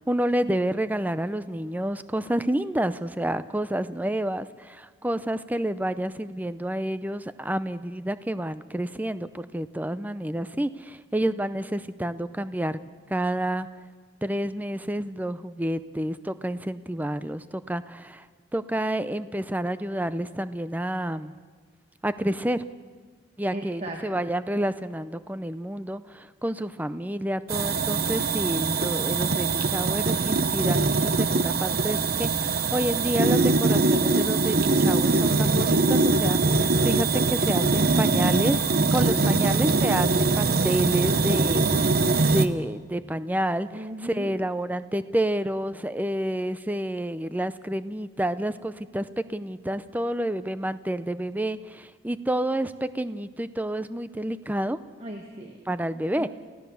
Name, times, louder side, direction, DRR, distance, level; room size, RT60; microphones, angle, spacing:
voice 1, 0.0-12.8 13.1-13.7 14.2-18.3 18.5-21.3 22.0-22.6 23.4-41.7 42.3-54.8 55.7-56.3, right 1 dB, 10° right, 13 dB, 0.5 m, -29 dB
voice 2, 23.5-24.0 43.7-44.4 55.0-55.6 56.1-56.3, right 1 dB, 30° right, 2 dB, 1.4 m, -37 dB
sound 1, 27.5-42.5, right 3 dB, 50° right, 0.8 m, -22 dB
28.0 x 16.0 x 7.0 m, 1.5 s
head